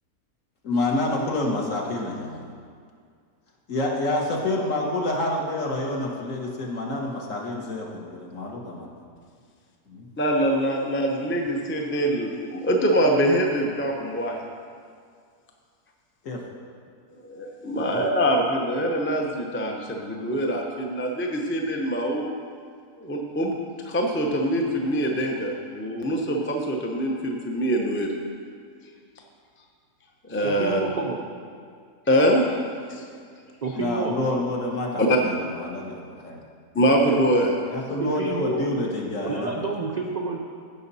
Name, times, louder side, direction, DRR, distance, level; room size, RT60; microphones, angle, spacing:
voice 1, 0.6-2.4 3.7-8.9 9.9-10.1 16.2-16.4 17.8-18.0 33.7-36.4 37.7-39.5, left 1 dB, 55° left, -1 dB, 1.6 m, -28 dB
voice 2, 10.2-14.4 17.2-22.3 23.0-23.6 23.8-28.1 30.3-30.8 32.1-32.4 32.9-33.0 35.0-35.2 36.7-37.6, equal, 15° left, 1 dB, 0.5 m, -24 dB
voice 3, 30.4-31.2 33.6-34.2 38.0-38.7 39.2-40.4, right 3 dB, 60° right, 0 dB, 0.4 m, -29 dB
16.0 x 5.5 x 4.1 m, 2.1 s
omnidirectional pair, 1.7 m